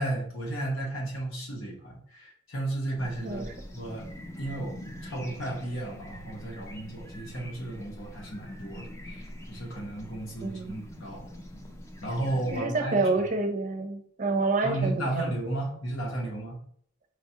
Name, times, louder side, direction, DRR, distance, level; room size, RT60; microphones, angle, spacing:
voice 1, 0.0-3.4 3.7-4.1 4.4-4.7 5.0-11.3 12.0-13.1 14.6-16.6, right 1 dB, 85° left, -2 dB, 1.2 m, -33 dB
sound 1, 3.0-12.6, left 1 dB, 15° left, 0.4 m, -44 dB
voice 2, 10.4-10.7 12.5-15.3, right 3 dB, 40° right, 5 dB, 0.5 m, -28 dB
4.8 x 2.4 x 2.8 m, 0.63 s
head